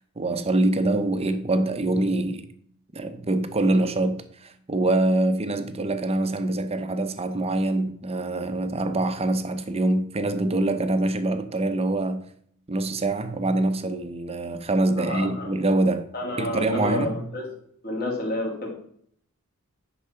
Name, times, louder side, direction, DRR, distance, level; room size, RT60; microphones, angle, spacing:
voice 1, 0.2-2.5 2.9-12.2 12.7-16.1 16.4-17.2, right 2 dB, 30° right, 0.8 m, -24 dB
voice 2, 14.9-15.5 16.1-17.5 17.8-18.7, left 1 dB, 45° left, 2.6 m, -29 dB
10.0 x 4.2 x 5.7 m
head